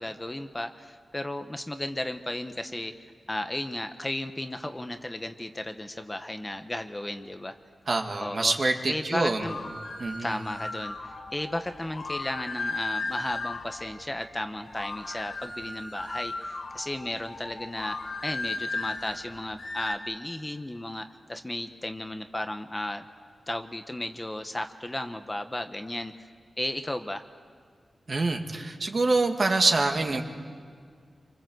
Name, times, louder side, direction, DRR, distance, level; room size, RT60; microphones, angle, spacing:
voice 1, 0.0-2.9 3.3-7.5 8.2-8.5 8.9-9.6 10.2-23.0 23.5-26.3 26.6-27.2, left 1 dB, 20° left, 7 dB, 1.0 m, -34 dB
voice 2, 7.9-9.5 10.0-10.4 28.1-30.2, right 3 dB, 50° right, 4 dB, 2.0 m, -25 dB
sound 1, 9.4-19.9, left 3 dB, 70° left, 3.5 m, -36 dB
27.0 x 25.0 x 7.9 m, 2.1 s
wide cardioid pair, 100°, 0 cm